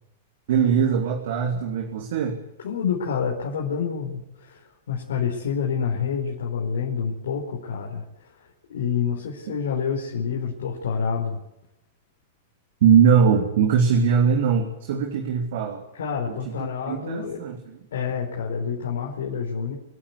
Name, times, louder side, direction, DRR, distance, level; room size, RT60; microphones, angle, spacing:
voice 1, 0.5-2.4 12.8-15.8 16.3-17.6, right 6 dB, 55° right, 3 dB, 3.0 m, -21 dB
voice 2, 2.6-4.6 4.9-8.0 8.7-11.4 15.9-17.4 17.9-19.7, left 6 dB, 60° left, -3 dB, 4.9 m, -27 dB
27.0 x 11.5 x 9.9 m, 0.85 s
figure-of-eight pair, 95°, 0 cm